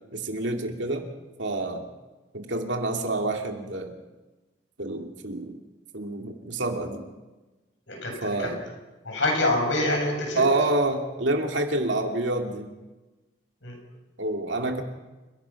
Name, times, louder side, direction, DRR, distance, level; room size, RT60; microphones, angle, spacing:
voice 1, 0.1-1.1 1.4-1.9 2.3-3.9 4.8-5.6 5.9-7.0 8.2-8.6 10.4-12.7 14.2-14.8, right 2 dB, 70° right, 3 dB, 2.5 m, -27 dB
voice 2, 7.9-8.5 9.0-10.4 13.6-13.7, left 1 dB, 75° left, 0 dB, 7.7 m, -26 dB
29.5 x 16.0 x 5.9 m, 1.1 s
head